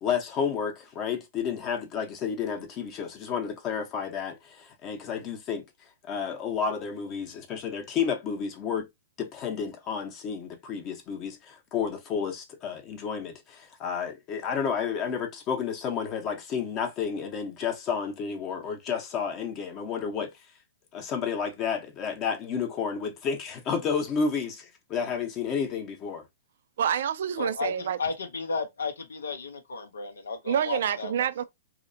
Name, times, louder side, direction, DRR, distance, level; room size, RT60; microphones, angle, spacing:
voice 1, 0.0-5.6 6.0-8.9 9.2-20.3 20.9-26.2, left 6 dB, 35° left, 0.7 m, -31 dB
voice 2, 26.8-28.0 30.5-31.4, right 9 dB, 70° right, 0.3 m, -27 dB
voice 3, 27.4-31.1, left 4 dB, 90° left, 0.5 m, -33 dB
2.8 x 2.0 x 2.5 m
hypercardioid pair, 125°, 0 cm